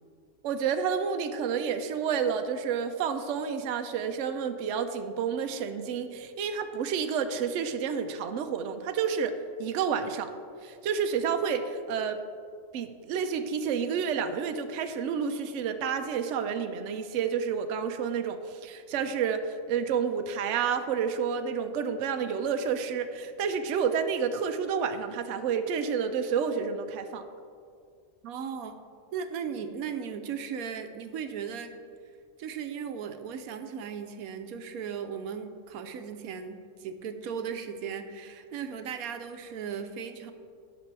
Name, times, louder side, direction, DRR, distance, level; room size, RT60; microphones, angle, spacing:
voice 1, 0.4-10.3 10.6-12.2 12.7-27.3, right 6 dB, 65° right, 7 dB, 0.9 m, -30 dB
voice 2, 28.2-28.8 29.1-31.7 32.4-40.3, right 7 dB, 85° right, 8 dB, 1.1 m, -37 dB
16.0 x 6.0 x 3.3 m, 2.2 s
omnidirectional pair, 1.5 m